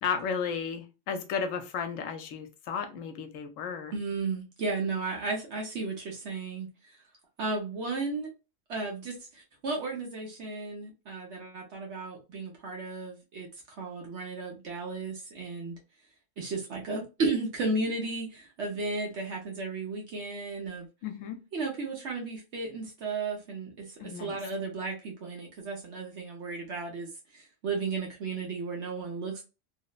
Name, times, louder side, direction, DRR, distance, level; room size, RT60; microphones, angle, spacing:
voice 1, 0.0-3.9 21.0-21.4 24.0-24.4, left 6 dB, 80° left, 1.0 m, -34 dB
voice 2, 3.9-7.0 7.4-8.3 8.7-13.5 13.8-15.8 16.4-20.9 21.5-29.4, right 3 dB, 65° right, 1.0 m, -34 dB
3.0 x 2.0 x 2.2 m
omnidirectional pair, 1.3 m